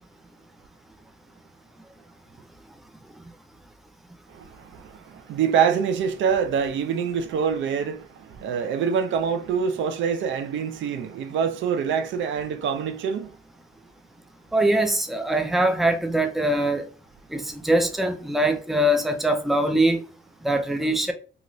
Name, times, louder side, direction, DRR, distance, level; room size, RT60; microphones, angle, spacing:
voice 1, 4.3-13.3, right 7 dB, 70° right, 0.5 m, -25 dB
voice 2, 14.5-16.9 17.3-20.0 20.4-21.1, right 1 dB, ahead, 0.5 m, -22 dB
2.6 x 2.4 x 3.0 m
cardioid pair, 90°, 20 cm